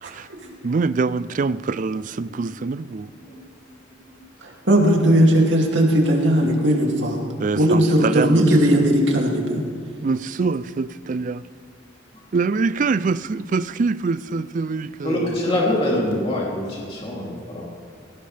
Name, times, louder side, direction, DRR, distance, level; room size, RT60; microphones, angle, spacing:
voice 1, 0.6-3.1 7.4-8.5 8.7-8.9 10.0-11.4 12.3-15.4 15.9-16.0, right 4 dB, 40° right, 16 dB, 0.4 m, -24 dB
voice 2, 4.4-7.2 7.5-9.6, equal, 65° right, -1 dB, 2.6 m, -17 dB
voice 3, 15.0-17.6, left 1 dB, 30° left, -4 dB, 3.1 m, -25 dB
21.5 x 17.0 x 3.4 m, 2.2 s
head